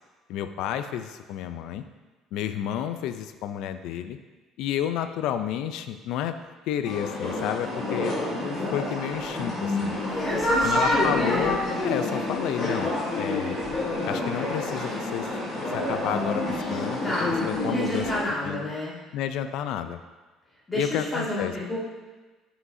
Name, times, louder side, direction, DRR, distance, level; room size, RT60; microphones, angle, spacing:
voice 1, 0.3-1.8 2.3-4.2 4.6-6.4 6.7-8.1 8.7-9.9 10.6-12.9 13.2-13.6 14.1-15.3 15.7-18.6 19.1-20.0 20.7-21.5, left 10 dB, 70° left, 9 dB, 0.4 m, -31 dB
sound 1, 6.8-18.2, left 2 dB, 45° left, 2.1 m, -28 dB
sound 2, 7.6-17.5, right 2 dB, 30° right, 1.3 m, -40 dB
voice 2, 10.1-11.5 17.0-18.9 20.7-21.8, left 1 dB, 15° left, -7 dB, 2.1 m, -29 dB
9.5 x 5.8 x 2.7 m, 1.3 s
cardioid pair, 150°, 0 cm